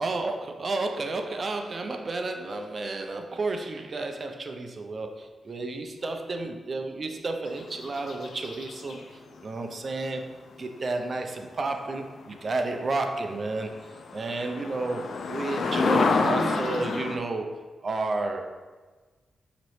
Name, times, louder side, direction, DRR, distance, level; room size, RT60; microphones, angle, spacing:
voice 1, 0.0-13.7 14.1-18.6, right 3 dB, 45° right, 5 dB, 0.4 m, -32 dB
sound 1, 7.5-9.0 12.5-12.6 13.1-13.2 13.4-17.2, left 4 dB, 65° left, 0.4 m, -28 dB
5.1 x 2.9 x 3.1 m, 1.4 s
cardioid pair, 95°, 0 cm